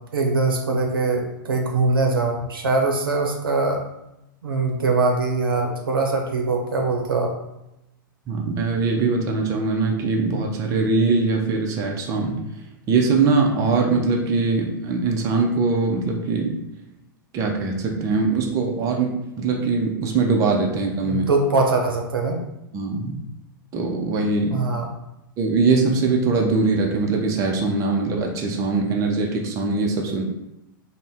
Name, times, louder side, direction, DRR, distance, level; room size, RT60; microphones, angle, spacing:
voice 1, 0.1-3.8 4.4-7.3 21.0-22.4 24.5-24.9, right 3 dB, 80° right, 2 dB, 0.6 m, -22 dB
voice 2, 8.3-12.4 12.9-16.6 17.3-21.3 22.7-23.2 23.7-24.6 25.4-30.2, right 3 dB, 30° right, 1 dB, 0.5 m, -22 dB
2.6 x 2.1 x 3.4 m, 0.88 s
hypercardioid pair, 110°, 12 cm